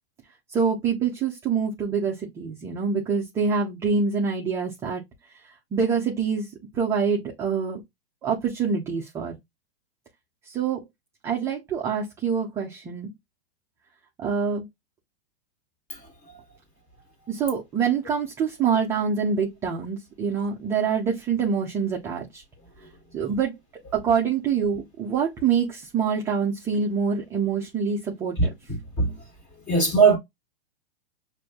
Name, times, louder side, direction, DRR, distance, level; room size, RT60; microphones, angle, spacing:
voice 1, 0.5-5.0 5.4-7.8 8.2-9.4 10.4-10.8 11.2-13.1 14.2-14.6 17.3-22.4 23.1-23.5 23.9-28.5, right 6 dB, 10° right, 0.3 m, -25 dB
voice 2, 28.4-29.2 29.7-30.2, right 4 dB, 20° left, 1.8 m, -20 dB
6.2 x 2.5 x 2.2 m
hypercardioid pair, 150°, 32 cm